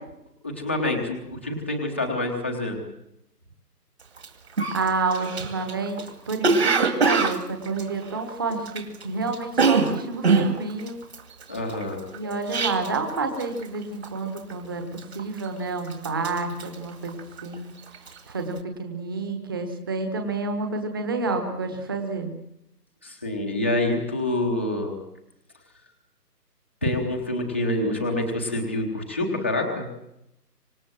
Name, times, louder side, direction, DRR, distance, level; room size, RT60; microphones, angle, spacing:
voice 1, 0.4-2.8 11.5-12.4 23.0-25.0 26.8-29.8, left 1 dB, 10° left, -1 dB, 1.0 m, -27 dB
Cough, 4.2-4.3 4.6-9.0 9.3-13.1 13.4-13.7 14.0-14.5 15.0-15.6 15.9-17.5 17.9-18.2, right 4 dB, 40° right, 2.4 m, -24 dB
voice 2, 4.7-6.0 6.3-11.0 12.1-17.7 18.3-22.3, right 3 dB, 15° right, 5 dB, 1.3 m, -29 dB
25.5 x 19.5 x 7.6 m, 0.81 s
figure-of-eight pair, 165°, 48 cm